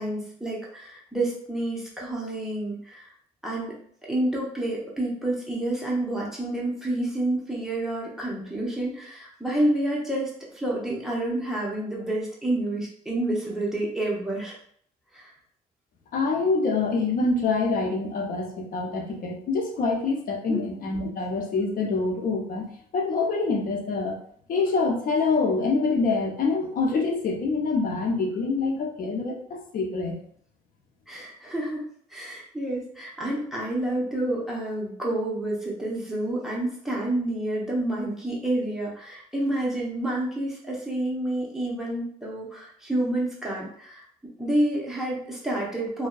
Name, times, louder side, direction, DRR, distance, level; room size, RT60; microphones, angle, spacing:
voice 1, 0.0-3.1 3.4-3.7 4.1-14.6 15.1-15.3 20.5-20.6 31.1-31.8 32.1-44.0 44.4-46.1, right 1 dB, ahead, -5 dB, 0.8 m, -29 dB
voice 2, 16.1-22.7 22.9-24.2 24.5-30.2, left 3 dB, 55° left, 0 dB, 0.6 m, -25 dB
2.6 x 2.2 x 2.3 m, 0.62 s
cardioid pair, 110°, 17 cm